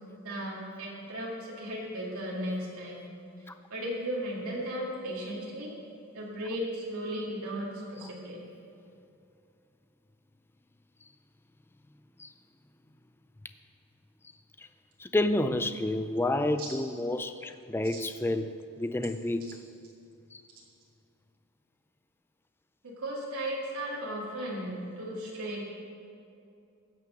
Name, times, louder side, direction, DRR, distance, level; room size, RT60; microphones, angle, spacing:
voice 1, 0.2-3.0 3.7-5.7 6.1-8.4 16.6-16.7 17.9-18.1 22.8-25.6, right 1 dB, 80° right, 2.3 m, -36 dB
voice 2, 15.0-19.7 20.3-20.4, left 1 dB, 10° left, 0.3 m, -30 dB
16.0 x 6.2 x 6.3 m
head